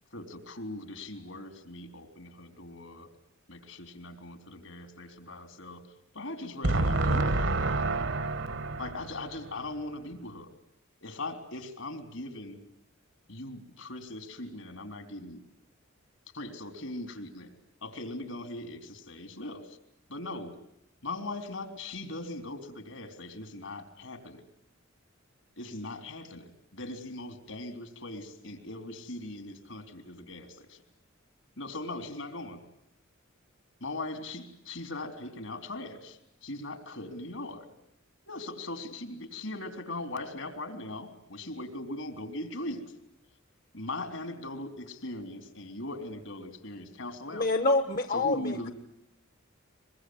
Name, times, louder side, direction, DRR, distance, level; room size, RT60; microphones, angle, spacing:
voice 1, 0.1-3.1 3.5-5.8 6.1-7.7 8.8-10.5 11.0-12.6 13.3-15.4 16.3-17.5 17.8-19.6 20.1-20.6 21.0-24.4 25.6-30.8 31.6-32.6 33.8-37.7 38.3-42.8 43.7-47.5 48.1-48.7, left 2 dB, 70° left, 7 dB, 3.8 m, -40 dB
voice 2, 6.6-9.0, right 2 dB, 60° right, 14 dB, 1.4 m, -27 dB
voice 3, 47.3-48.7, left 2 dB, 40° left, 9 dB, 1.2 m, -27 dB
23.5 x 22.5 x 9.6 m, 0.76 s
head